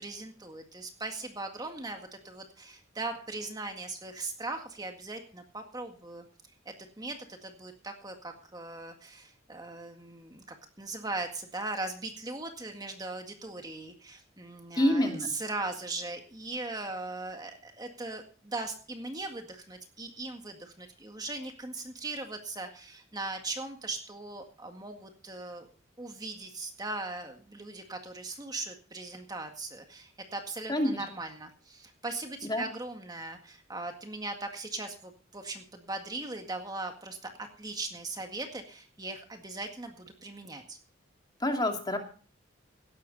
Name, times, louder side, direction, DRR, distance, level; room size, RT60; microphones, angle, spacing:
voice 1, 0.0-6.2 6.7-10.4 10.8-25.7 26.0-37.2 37.6-40.8, right 2 dB, 20° right, 4 dB, 1.8 m, -39 dB
voice 2, 14.8-15.3 30.7-31.0 32.4-32.6 41.4-42.0, left 1 dB, 20° left, 3 dB, 2.4 m, -27 dB
17.5 x 12.0 x 4.0 m, 0.40 s
head